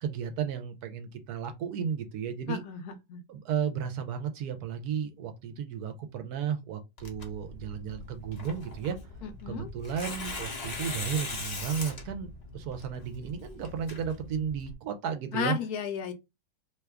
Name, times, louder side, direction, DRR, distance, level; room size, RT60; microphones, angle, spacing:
voice 1, 0.0-2.6 3.3-9.0 9.5-15.6, right 7 dB, 75° right, 1.0 m, -34 dB
voice 2, 2.5-3.2 9.2-9.7 15.3-16.1, left 7 dB, 75° left, 1.0 m, -34 dB
Tearing, 7.0-14.7, left 3 dB, 45° left, 0.5 m, -40 dB
2.9 x 2.3 x 3.3 m
omnidirectional pair, 1.8 m